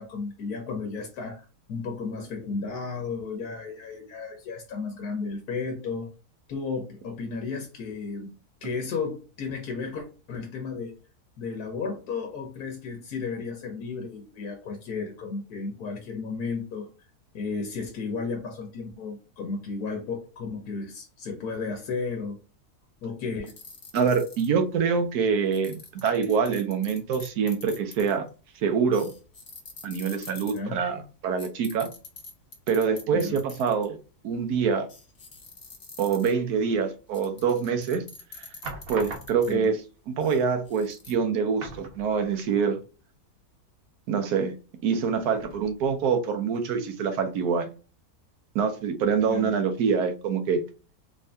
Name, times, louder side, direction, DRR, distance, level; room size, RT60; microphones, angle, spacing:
voice 1, 0.0-6.1 6.5-8.3 8.6-10.9 11.4-16.9 17.3-22.3 23.0-23.5 30.5-30.8 33.1-33.4 39.5-39.7 49.3-49.6, left 4 dB, 90° left, 1.4 m, -33 dB
sound 1, 23.5-24.7 25.5-28.3 28.9-30.6 31.4-33.8 34.3-34.4 34.9-36.5 37.1-39.7 40.2-41.1, left 3 dB, 50° left, 1.3 m, -44 dB
voice 2, 23.9-28.2 28.6-29.1 29.8-31.9 32.7-34.0 34.2-34.9 36.0-38.0 38.3-38.5 38.9-39.8 40.1-42.8 44.1-44.5 44.8-47.7 48.5-50.6, right 6 dB, 85° right, 1.3 m, -25 dB
sound 2, 37.4-37.8 38.6-39.7 40.6-40.8 41.1-41.2 41.6-42.6 42.9-43.0 45.3-46.0 46.6-46.7, right 3 dB, 65° right, 1.3 m, -41 dB
3.6 x 2.7 x 3.3 m
omnidirectional pair, 1.6 m